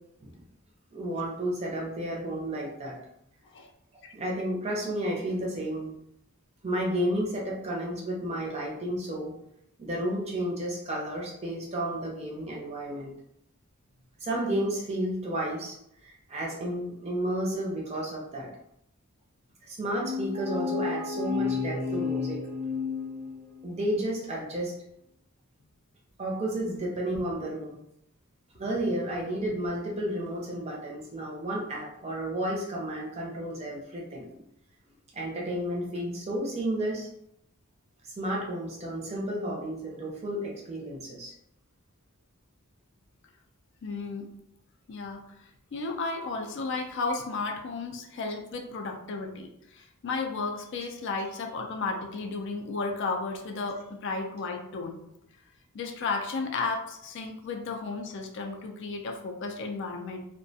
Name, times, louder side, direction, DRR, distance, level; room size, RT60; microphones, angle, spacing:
voice 1, 0.9-3.0 4.1-5.9 6.6-9.4 9.8-13.1 14.2-15.8 16.0-18.5 19.6-22.5 23.6-24.7 26.2-27.8 28.5-34.4 35.1-37.1 38.0-41.3, right 1 dB, 30° right, -2 dB, 0.5 m, -32 dB
sound 1, 19.9-23.7, left 5 dB, 85° left, 0.7 m, -31 dB
voice 2, 43.8-44.3 44.9-45.2 45.7-55.0 55.7-60.3, left 3 dB, 55° left, 3 dB, 0.3 m, -33 dB
2.3 x 2.1 x 2.7 m, 0.77 s
head